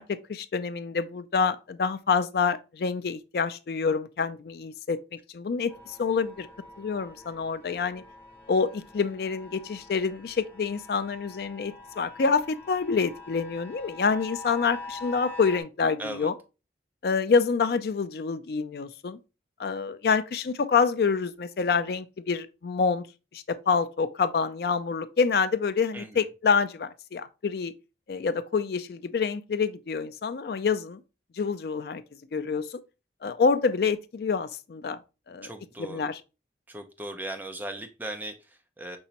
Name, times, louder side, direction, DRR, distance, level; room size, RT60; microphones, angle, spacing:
voice 1, 0.0-5.0 5.3-6.5 6.8-8.0 8.5-16.3 17.0-19.2 19.6-23.1 23.3-27.7 28.1-31.0 31.4-32.0 32.3-32.8 33.2-35.0 35.3-35.5 35.8-36.2, left 5 dB, 55° left, 0.4 m, -27 dB
sound 1, 5.7-15.6, left 3 dB, 10° left, 0.9 m, -45 dB
voice 2, 16.0-16.3 25.9-26.3 35.4-36.1 36.7-39.0, right 1 dB, 10° right, 0.5 m, -38 dB
5.4 x 2.9 x 2.8 m
head